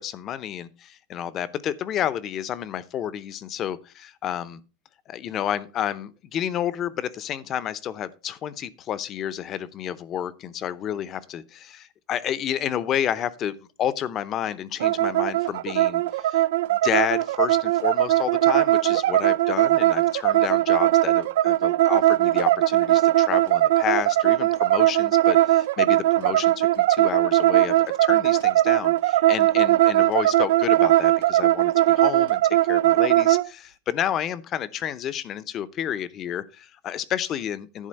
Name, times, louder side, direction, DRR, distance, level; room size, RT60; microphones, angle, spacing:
voice 1, 0.0-4.6 5.1-16.4 16.7-27.8 28.0-32.4 32.7-37.9, left 10 dB, 35° left, 0.7 m, -30 dB
sound 1, 14.8-33.5, right 15 dB, 85° right, 0.3 m, -20 dB
11.0 x 3.8 x 6.4 m
supercardioid pair, 140°, 0 cm